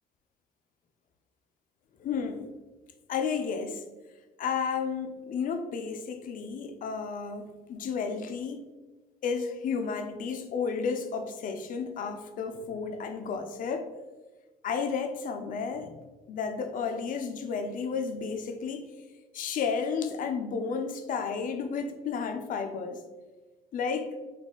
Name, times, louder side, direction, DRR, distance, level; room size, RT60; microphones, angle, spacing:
voice 1, 2.0-2.5 3.1-3.8 4.4-8.6 9.2-13.9 14.6-16.0 16.3-18.9 19.3-23.0 23.7-24.1, left 5 dB, 55° left, 6 dB, 0.5 m, -32 dB
4.0 x 2.7 x 3.7 m, 1.2 s
cardioid pair, 110°, 17 cm